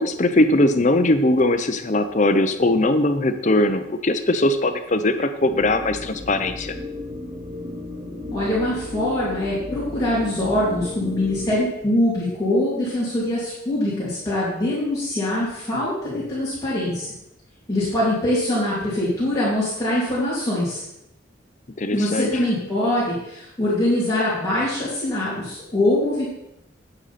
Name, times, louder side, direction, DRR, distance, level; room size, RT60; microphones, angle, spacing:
voice 1, 0.0-6.7 21.8-22.3, left 1 dB, 40° left, 8 dB, 0.7 m, -20 dB
sound 1, 5.4-11.6, left 2 dB, 35° right, 1.4 m, -34 dB
voice 2, 8.3-17.1 17.7-20.8 21.9-26.2, left 1 dB, 20° left, -10 dB, 2.7 m, -23 dB
8.9 x 8.0 x 4.2 m, 0.82 s
head